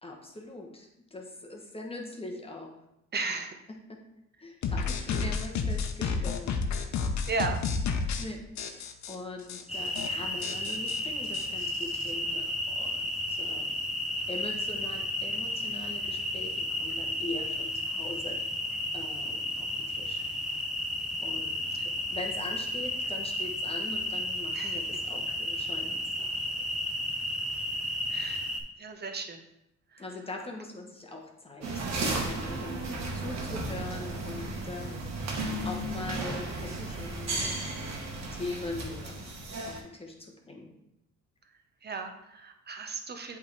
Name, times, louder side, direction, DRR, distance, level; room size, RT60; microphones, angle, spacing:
voice 1, 0.0-2.7 3.9-4.0 4.4-6.5 7.0-7.2 8.2-8.4 8.7-13.7 14.3-18.4 18.9-20.2 21.2-21.6 22.1-26.6 30.0-32.8 33.1-35.3 35.6-37.6 38.3-39.3 39.6-40.7, left 2 dB, 20° left, 1 dB, 1.1 m, -42 dB
voice 2, 3.1-3.5 7.3-7.6 24.5-24.8 28.1-28.5 28.8-29.4 29.9-30.0 41.8-43.4, right 4 dB, 35° right, 6 dB, 0.8 m, -35 dB
sound 1, 4.6-8.3 8.6-9.2 9.5-9.6 9.9-10.1 10.4-12.1, left 5 dB, 65° left, 0.7 m, -31 dB
sound 2, 9.7-28.6, left 1 dB, ahead, 0.8 m, -33 dB
sound 3, 31.6-39.8, right 2 dB, 60° right, 1.4 m, -34 dB
7.8 x 3.6 x 3.3 m, 0.83 s
cardioid pair, 90°, 30 cm